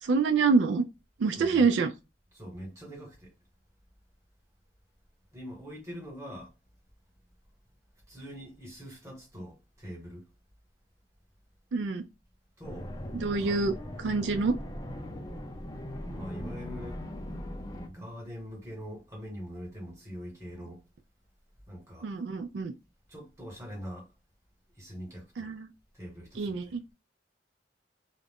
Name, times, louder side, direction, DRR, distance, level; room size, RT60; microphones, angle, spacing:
voice 1, 0.0-0.8 1.2-1.9 11.7-12.0 13.1-13.7 14.0-14.6 22.0-22.7 25.4-25.7 26.4-26.8, right 4 dB, 80° right, 0.4 m, -26 dB
voice 2, 1.4-1.7 2.3-3.3 5.3-6.5 8.1-10.2 12.6-12.9 13.4-13.8 16.1-17.0 17.9-20.8 21.7-22.1 23.1-24.1 24.7-25.5 25.9-26.7, equal, 15° right, 1.2 m, -43 dB
sound 1, 12.6-17.9, equal, 20° left, 0.4 m, -39 dB
2.4 x 2.1 x 3.4 m
head